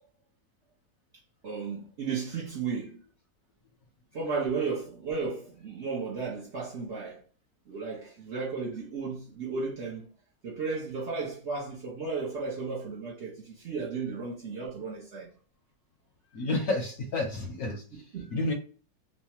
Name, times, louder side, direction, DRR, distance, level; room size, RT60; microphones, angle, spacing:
voice 1, 1.4-3.0 4.1-7.2 7.7-10.1 10.4-15.3 18.1-18.3, right 4 dB, 55° right, 0.8 m, -34 dB
voice 2, 16.3-18.5, left 2 dB, 65° left, 0.9 m, -31 dB
3.2 x 2.1 x 2.8 m
omnidirectional pair, 1.8 m